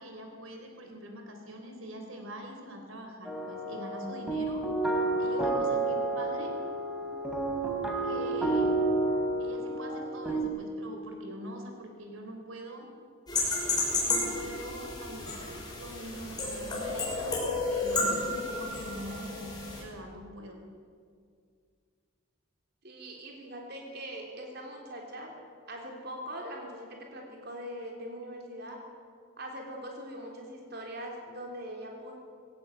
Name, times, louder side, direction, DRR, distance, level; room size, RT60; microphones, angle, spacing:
voice 1, 0.0-4.7 5.2-6.6 8.0-8.7 9.4-12.9 14.1-20.6, equal, 75° right, 3 dB, 3.5 m, -43 dB
sound 1, 3.2-10.4, right 2 dB, 5° right, 3.0 m, -30 dB
sound 2, 13.3-19.8, left 3 dB, 20° left, 5.6 m, -32 dB
voice 2, 22.8-25.3 25.7-28.8 29.4-32.1, equal, 50° right, 0 dB, 3.5 m, -41 dB
20.0 x 17.0 x 8.6 m, 2.2 s
head